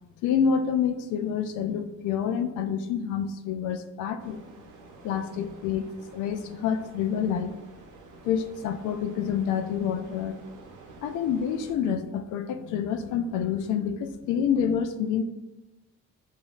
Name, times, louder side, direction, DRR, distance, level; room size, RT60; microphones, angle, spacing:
voice 1, 0.2-4.4 5.0-7.5 8.2-10.4 11.0-15.2, left 7 dB, 90° left, 8 dB, 0.5 m, -28 dB
sound 1, 4.2-11.8, right 3 dB, 90° right, 0.8 m, -49 dB
6.9 x 2.7 x 2.4 m, 1.0 s
cardioid pair, 90°, 30 cm